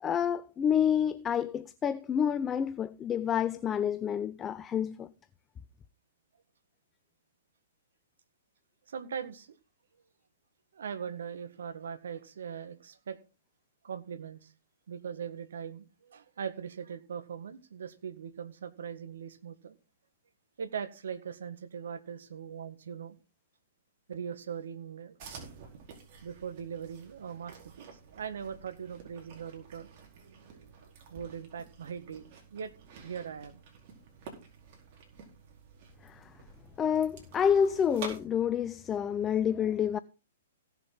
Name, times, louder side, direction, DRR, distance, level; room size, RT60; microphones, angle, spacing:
voice 1, 0.0-5.1 36.0-36.3 36.8-40.0, left 8 dB, 20° left, 0.5 m, -28 dB
voice 2, 8.9-9.5 10.7-13.2 13.8-14.5 14.9-19.7 20.6-23.2 24.1-25.2 26.2-30.7 31.1-33.6, right 7 dB, 70° right, 1.6 m, -40 dB
sound 1, 25.2-38.2, right 5 dB, 45° right, 4.6 m, -50 dB
17.0 x 7.1 x 4.0 m
hypercardioid pair, 120°, 0 cm